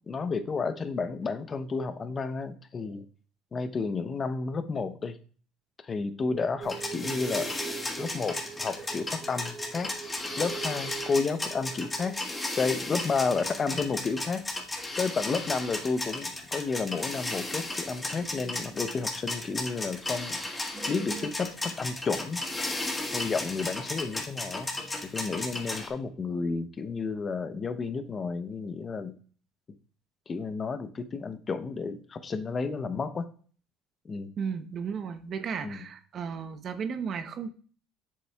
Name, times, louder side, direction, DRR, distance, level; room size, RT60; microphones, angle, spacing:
voice 1, 0.1-3.1 3.5-5.2 5.8-7.5 8.0-9.9 10.4-12.2 12.6-14.4 15.0-20.4 20.9-22.4 23.1-29.1 30.3-33.3 34.0-34.3 35.6-35.8, left 4 dB, 30° left, 11 dB, 0.7 m, -31 dB
sound 1, 6.2-14.7 15.0-15.5 15.9-16.0 16.5-16.6 17.6-19.7 20.0-20.1 20.4-21.3, right 7 dB, 30° right, 0.4 m, -44 dB
sound 2, 6.6-25.9, left 2 dB, 15° left, 1.6 m, -34 dB
voice 2, 34.4-37.5, right 6 dB, 45° right, 10 dB, 0.8 m, -34 dB
7.6 x 6.8 x 2.3 m, 0.42 s
supercardioid pair, 100°, 0 cm